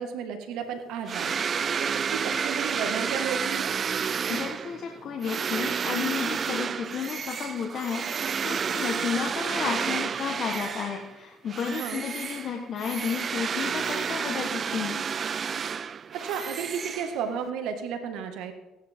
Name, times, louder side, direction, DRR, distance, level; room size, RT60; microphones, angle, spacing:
voice 1, 0.0-1.4 1.8-3.8 11.7-12.1 16.1-18.5, right 7 dB, 80° right, 6 dB, 1.8 m, -33 dB
sound 1, 1.1-11.1 11.5-17.5, right 6 dB, 40° right, 0.3 m, -30 dB
voice 2, 4.3-15.0, left 7 dB, 50° left, 2 dB, 1.3 m, -32 dB
17.0 x 11.0 x 3.7 m, 1.1 s
cardioid pair, 100°, 0 cm